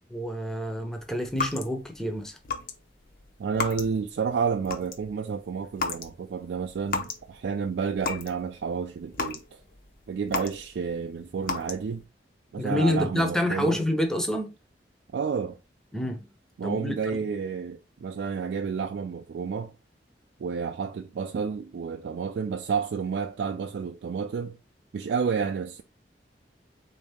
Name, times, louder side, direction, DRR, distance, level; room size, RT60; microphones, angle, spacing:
voice 1, 0.1-2.4 12.6-14.5 15.9-16.3 16.6-16.9, left 1 dB, 5° left, 0.5 m, -27 dB
sound 1, 1.3-2.0 2.4-2.7 3.0-4.1 4.5-5.1 5.7-6.1 6.4-7.3 7.6-8.4 8.7-10.9 11.4-12.0, left 4 dB, 50° left, 0.6 m, -33 dB
voice 2, 3.4-9.6 10.1-12.0 12.5-13.8 15.1-15.6 16.6-19.7 20.4-24.6 24.9-25.8, right 6 dB, 75° right, 0.3 m, -30 dB
3.8 x 2.7 x 3.4 m
head